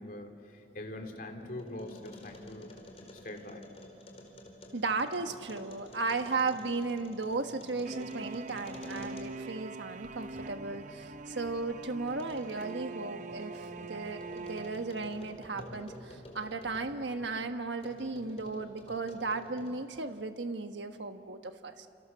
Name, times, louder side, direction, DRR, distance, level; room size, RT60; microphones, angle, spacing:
voice 1, 0.0-2.7 3.1-3.6 9.0-9.1 15.6-15.8, left 1 dB, 50° left, 3 dB, 2.9 m, -43 dB
sound 1, 0.6-9.6 10.0-17.3 17.8-19.9, left 1 dB, 35° left, 4.5 m, -51 dB
voice 2, 4.7-21.9, right 3 dB, 80° right, 7 dB, 1.3 m, -35 dB
sound 2, 7.8-15.6, right 3 dB, 45° right, 0.8 m, -44 dB
29.5 x 28.5 x 6.9 m, 2.4 s
head